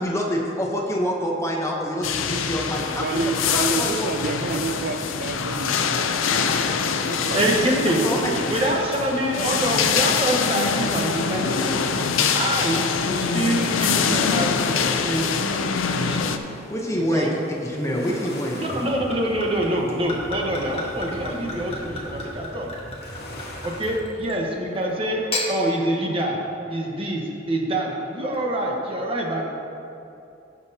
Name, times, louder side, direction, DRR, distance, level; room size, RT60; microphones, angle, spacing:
voice 1, 0.0-3.0 3.5-4.1 7.6-7.8 8.0-8.3 9.3-9.4 13.1-13.3 16.7-17.3 17.6-18.8, equal, 15° left, -1 dB, 0.9 m, -26 dB
sound 1, 2.0-16.4, left 6 dB, 85° left, 0.5 m, -24 dB
voice 2, 3.0-8.8, right 3 dB, 50° right, 6 dB, 0.7 m, -30 dB
sound 2, 6.0-24.0, left 1 dB, 55° left, 1.1 m, -42 dB
voice 3, 7.3-8.0 8.5-11.8 12.3-15.3 15.7-16.3 17.1-17.3 18.6-22.7 23.6-25.2 25.5-26.4 26.7-27.2 27.5-29.5, right 1 dB, 30° right, -1 dB, 1.2 m, -25 dB
Gurgling / Chink clink / Liquid, 18.3-24.4 25.1-25.5, left 2 dB, 30° left, 1.4 m, -34 dB
16.0 x 6.2 x 2.8 m, 2.7 s
head